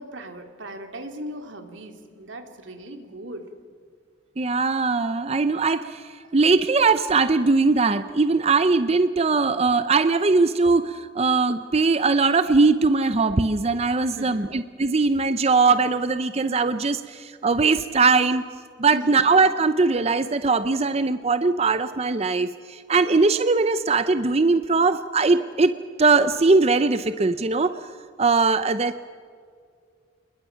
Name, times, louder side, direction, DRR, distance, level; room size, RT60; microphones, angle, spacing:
voice 1, 0.0-3.5 14.2-14.5 18.9-19.3 23.1-23.2, equal, 90° right, 5 dB, 2.5 m, -38 dB
voice 2, 4.4-18.4 18.8-25.7 26.0-27.8 28.2-29.0, right 4 dB, 35° right, 11 dB, 0.6 m, -20 dB
29.0 x 21.0 x 5.8 m, 2.2 s
head